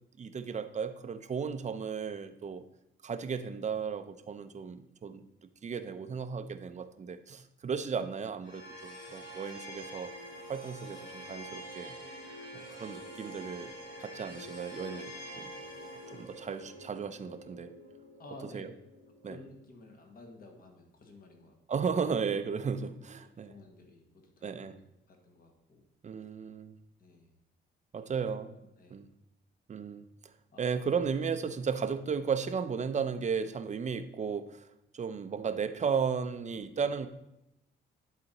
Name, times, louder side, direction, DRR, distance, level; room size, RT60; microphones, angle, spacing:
voice 1, 0.2-2.6 3.0-5.2 5.6-10.1 10.5-11.9 12.5-13.7 14.0-15.5 16.1-17.7 18.5-18.7 19.2-19.4 21.7-23.5 24.4-24.8 26.0-26.7 27.9-28.5 28.9-29.1 29.7-30.0 30.6-34.7 34.9-37.1, right 6 dB, 35° right, 10 dB, 0.6 m, -35 dB
sound 1, 8.4-19.5, equal, 80° left, 2.9 m, -46 dB
voice 2, 18.2-18.6 18.9-21.8 23.2-24.8 25.1-25.8 27.0-27.3 28.0-28.1 28.8-29.0 30.5-30.6, left 2 dB, 45° left, 2 dB, 1.7 m, -53 dB
11.0 x 4.2 x 4.1 m, 0.89 s
cardioid pair, 90°, 20 cm